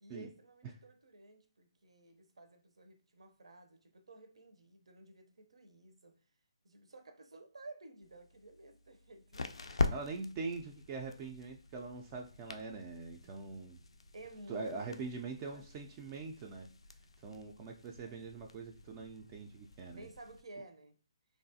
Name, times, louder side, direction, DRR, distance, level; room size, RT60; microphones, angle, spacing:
voice 1, 0.0-6.2 6.6-10.0 14.1-15.1 15.5-15.9 18.0-18.3 19.9-21.0, right 2 dB, 80° right, 0.6 m, -54 dB
sound 1, 8.0-20.4, left 3 dB, 85° left, 0.3 m, -43 dB
voice 2, 9.9-13.8 14.5-16.7 17.2-20.1, right 4 dB, 25° right, 0.3 m, -43 dB
3.1 x 2.3 x 2.6 m
hypercardioid pair, 150°, 3 cm